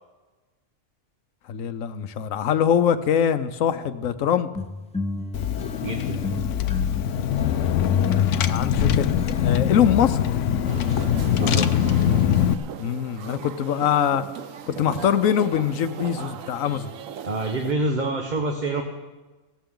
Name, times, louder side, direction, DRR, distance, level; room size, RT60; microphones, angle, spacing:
voice 1, 1.5-4.5 7.8-10.2 12.8-14.2 14.7-16.9, left 9 dB, 90° left, 12 dB, 1.2 m, -23 dB
sound 1, 4.5-11.0, left 3 dB, 10° left, 0.5 m, -35 dB
Car / Engine, 5.3-12.5, left 9 dB, 70° left, 1.0 m, -22 dB
voice 2, 5.8-6.2 11.4-11.9 17.2-18.8, right 2 dB, 35° right, 2 dB, 1.3 m, -27 dB
sound 2, 10.7-17.7, right 8 dB, 80° right, 1.2 m, -38 dB
18.5 x 16.0 x 3.8 m, 1.2 s
omnidirectional pair, 1.3 m